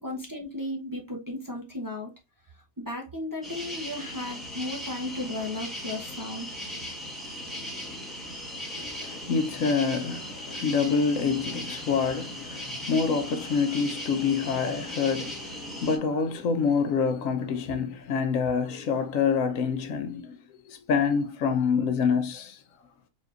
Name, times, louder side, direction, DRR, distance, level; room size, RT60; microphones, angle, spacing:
voice 1, 0.0-2.1 2.8-6.5, left 1 dB, 15° right, 0.8 m, -35 dB
sound 1, 3.4-16.0, left 1 dB, ahead, 1.2 m, -38 dB
voice 2, 8.8-15.5 15.8-20.3 20.9-22.6, left 5 dB, 75° left, 1.1 m, -26 dB
4.2 x 4.1 x 2.5 m
omnidirectional pair, 1.4 m